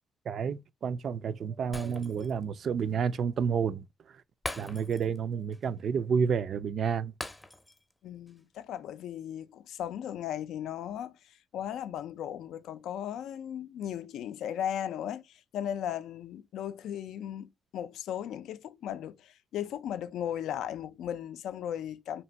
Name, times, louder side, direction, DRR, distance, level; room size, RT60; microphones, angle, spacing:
voice 1, 0.3-3.8 4.6-7.1, right 6 dB, 60° right, 0.3 m, -30 dB
Shatter, 1.7-2.4 2.8-2.9 4.4-5.2 5.5-5.7 7.2-7.9 8.3-8.4, left 1 dB, 10° left, 0.5 m, -41 dB
voice 2, 8.0-22.2, left 10 dB, 80° left, 0.3 m, -37 dB
2.9 x 2.6 x 4.2 m
cardioid pair, 90°, 0 cm